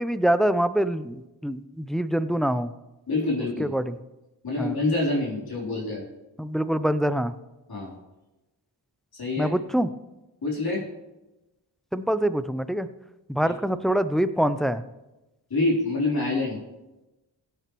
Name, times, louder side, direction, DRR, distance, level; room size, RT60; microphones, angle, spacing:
voice 1, 0.0-2.7 3.6-4.0 4.6-4.8 6.4-7.3 9.4-9.9 11.9-12.9 13.3-14.8, right 1 dB, ahead, 12 dB, 0.5 m, -25 dB
voice 2, 3.1-3.7 4.4-6.0 7.7-7.9 9.1-9.5 10.4-10.8 13.4-13.5 15.5-16.6, left 2 dB, 60° left, -4 dB, 3.6 m, -26 dB
16.0 x 9.0 x 3.1 m, 1.0 s
cardioid pair, 60°, 42 cm